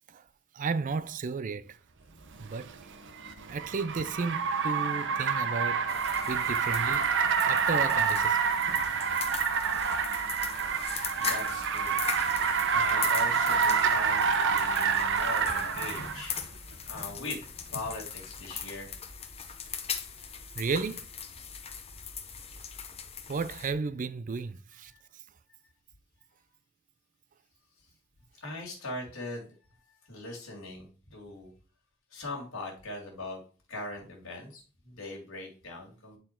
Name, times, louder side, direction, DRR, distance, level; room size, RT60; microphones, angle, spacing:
voice 1, 0.5-1.8 2.4-2.7 3.5-5.9 6.3-7.1 7.4-8.4 20.6-21.0 23.3-24.9, right 4 dB, 40° right, 0.4 m, -33 dB
Car, 2.3-16.3, right 6 dB, 60° right, 0.8 m, -28 dB
sound 1, 5.9-23.7, left 6 dB, 30° left, 0.8 m, -40 dB
voice 2, 10.7-12.0 12.7-16.3 16.9-18.9 19.4-19.5 24.9-25.0 28.4-29.5 30.1-31.5 32.1-33.4 33.7-36.2, left 2 dB, 75° left, 2.2 m, -41 dB
9.0 x 4.1 x 4.3 m
head